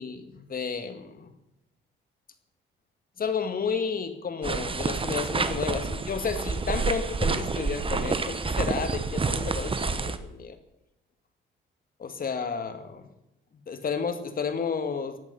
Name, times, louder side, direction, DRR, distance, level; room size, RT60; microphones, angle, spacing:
voice 1, 0.0-1.4 3.2-10.6 12.0-13.1 13.7-15.2, left 5 dB, 45° left, 8 dB, 2.2 m, -32 dB
sound 1, 4.4-10.2, right 4 dB, 25° right, 1.2 m, -28 dB
16.5 x 11.0 x 5.6 m, 0.87 s
cardioid pair, 90°, 20 cm